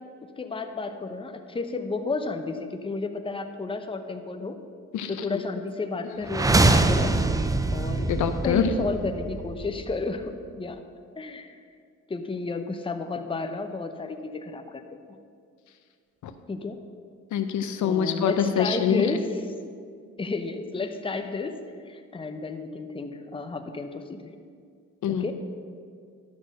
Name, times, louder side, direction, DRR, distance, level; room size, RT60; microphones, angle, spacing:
voice 1, 0.4-4.6 5.1-7.4 7.7-8.1 8.4-10.8 11.2-11.5 12.1-14.8 16.5-16.8 17.8-19.3 20.2-21.6 21.9-24.4 25.1-25.3, left 3 dB, 15° left, 6 dB, 0.8 m, -32 dB
voice 2, 4.9-5.4 8.1-8.8 16.2-16.3 17.3-19.1 25.0-25.3, left 7 dB, 75° left, 8 dB, 0.8 m, -25 dB
sound 1, 6.2-10.2, right 2 dB, 10° right, 0.5 m, -24 dB
11.5 x 6.1 x 6.4 m, 2.2 s
cardioid pair, 90°, 30 cm